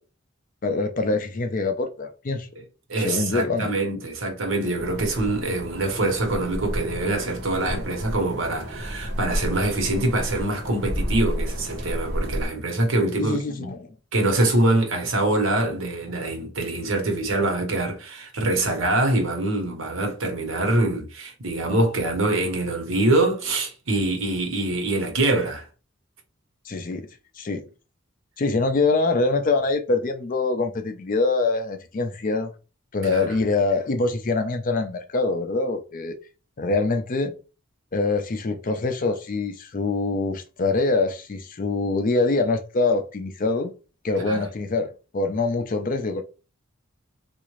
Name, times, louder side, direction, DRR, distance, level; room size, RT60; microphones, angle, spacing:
voice 1, 0.6-2.5 3.0-3.7 13.2-13.8 26.7-27.1 27.4-27.7 28.4-32.5 32.9-36.1 36.6-37.3 37.9-43.7 44.0-46.2, left 3 dB, 40° left, 0.4 m, -24 dB
voice 2, 2.9-13.7 14.1-25.7 33.0-33.4 44.2-44.4, right 2 dB, 70° right, 1.1 m, -24 dB
sound 1, 4.8-12.5, equal, 50° right, 0.9 m, -31 dB
3.6 x 2.5 x 3.1 m
head